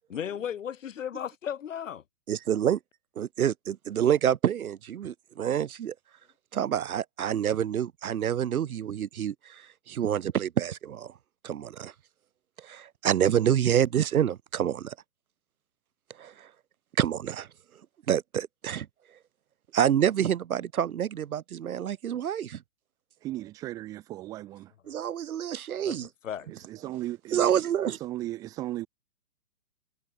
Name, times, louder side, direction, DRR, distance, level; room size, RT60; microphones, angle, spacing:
voice 1, 0.1-2.0 25.8-26.7, left 9 dB, 55° left, 6.4 m, -36 dB
voice 2, 2.3-2.8 3.2-5.9 6.5-11.1 11.4-11.9 12.6-14.9 16.2-16.5 17.0-17.5 18.1-18.9 19.7-22.6 24.9-26.1 27.3-28.0, right 9 dB, 65° right, 1.1 m, -27 dB
voice 3, 23.2-24.7 26.5-28.9, right 15 dB, 10° right, 1.0 m, -37 dB
hypercardioid pair, 170°, 46 cm